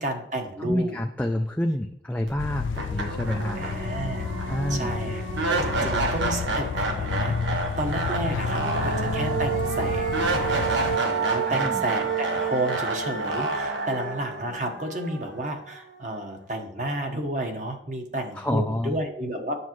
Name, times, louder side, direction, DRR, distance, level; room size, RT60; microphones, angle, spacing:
voice 1, 0.0-1.0 3.5-5.2 5.5-10.6 11.0-19.6, right 1 dB, 45° right, 3 dB, 1.2 m, -31 dB
voice 2, 0.6-3.6 4.5-5.0 5.8-5.9 11.5-11.8 18.3-19.0, left 1 dB, 10° left, 3 dB, 0.4 m, -28 dB
sound 1, 2.3-2.4 2.7-15.8, right 4 dB, 75° right, 1.3 m, -28 dB
kizkulesi-ambiance, 2.4-11.0, left 6 dB, 90° left, 0.3 m, -31 dB
9.4 x 7.1 x 3.1 m, 0.70 s
head